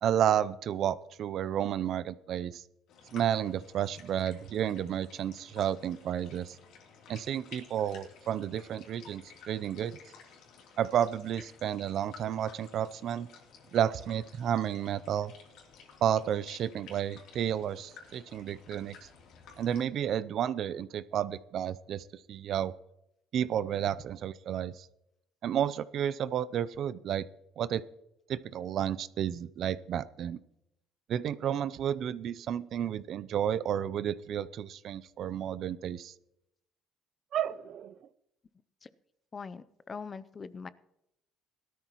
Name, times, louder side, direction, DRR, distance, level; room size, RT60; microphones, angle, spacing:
voice 1, 0.0-2.6 3.1-6.6 7.1-10.0 10.8-13.3 13.7-15.3 16.0-19.0 19.6-22.7 23.3-24.9 25.4-27.3 27.6-27.8 28.3-30.4 31.1-36.1 37.3-38.0, right 10 dB, 55° right, 17 dB, 0.5 m, -31 dB
sound 1, 2.9-19.8, left 5 dB, 75° left, 3.1 m, -54 dB
voice 2, 39.3-40.7, left 5 dB, 30° left, 16 dB, 0.5 m, -42 dB
18.0 x 13.0 x 3.0 m, 0.82 s
cardioid pair, 120°, 0 cm